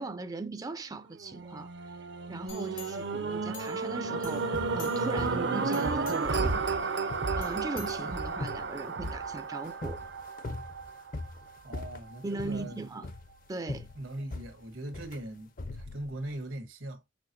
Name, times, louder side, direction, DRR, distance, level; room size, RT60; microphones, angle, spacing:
voice 1, 0.0-2.0 2.3-6.7 7.4-10.0 12.2-13.1 13.5-13.9, right 2 dB, 20° right, 0.4 m, -39 dB
sound 1, 1.2-11.5 12.1-12.2, right 4 dB, 60° right, 0.6 m, -32 dB
sound 2, 2.5-4.0 4.2-5.3 5.7-6.5 7.4-8.5 9.0-9.1, left 9 dB, 85° left, 1.3 m, -50 dB
sound 3, 4.2-16.5, left 2 dB, 45° left, 0.5 m, -42 dB
voice 2, 11.6-12.8 13.9-17.0, right 1 dB, 85° right, 1.7 m, -40 dB
6.2 x 2.9 x 2.8 m
head